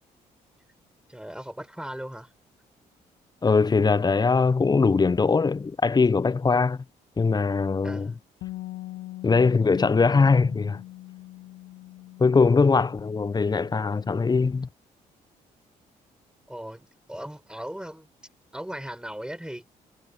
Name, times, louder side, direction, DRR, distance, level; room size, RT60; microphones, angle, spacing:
voice 1, 1.1-2.3 7.8-8.2 16.5-18.1 18.5-19.7, right 1 dB, 5° right, 4.8 m, -38 dB
voice 2, 3.4-6.8 7.2-8.1 9.2-10.8 12.2-14.7, left 4 dB, 20° left, 0.6 m, -21 dB
Bass guitar, 8.4-14.7, left 17 dB, 75° left, 6.1 m, -42 dB
hypercardioid pair, 45°, 19 cm